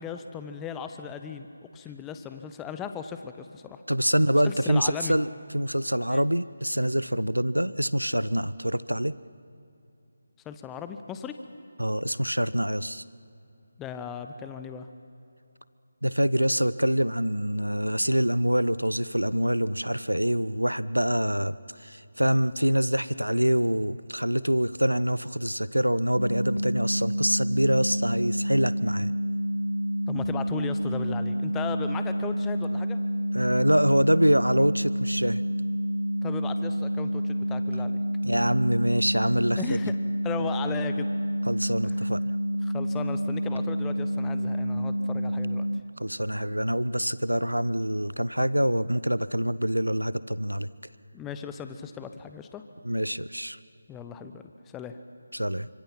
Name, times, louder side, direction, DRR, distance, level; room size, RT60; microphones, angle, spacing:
voice 1, 0.0-1.5 1.7-3.8 4.4-5.2 6.1-6.2 10.5-11.3 13.8-14.9 30.1-33.0 36.2-38.0 39.6-39.9 40.2-41.1 41.8-42.0 42.6-45.7 51.1-52.6 53.9-54.4 54.7-55.0, left 7 dB, 10° left, 9 dB, 0.7 m, -37 dB
voice 2, 3.9-5.3 5.5-9.1 11.8-13.0 16.0-21.5 21.8-29.1 33.3-35.4 38.2-39.8 41.5-42.2 46.0-50.7 52.8-53.6 55.3-55.7, equal, 85° right, 17 dB, 0.8 m, -25 dB
sound 1, 26.2-45.8, equal, 85° left, 1.3 m, -29 dB
29.0 x 25.5 x 5.9 m, 2.7 s
figure-of-eight pair, 155°, 0 cm